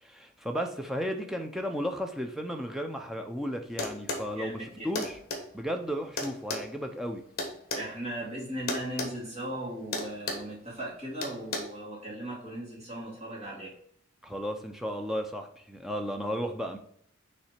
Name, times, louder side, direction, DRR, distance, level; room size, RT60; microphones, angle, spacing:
voice 1, 0.0-5.2 5.5-7.2 14.2-16.8, equal, ahead, 0.5 m, -34 dB
sound 1, 3.8-4.3 4.9-5.4 6.2-7.9 8.7-9.1 9.4-9.6 9.9-10.5 11.2-11.6, left 2 dB, 50° left, 1.3 m, -33 dB
voice 2, 4.4-4.9 7.7-13.7, right 1 dB, 30° right, 2.0 m, -37 dB
5.9 x 3.3 x 5.8 m
head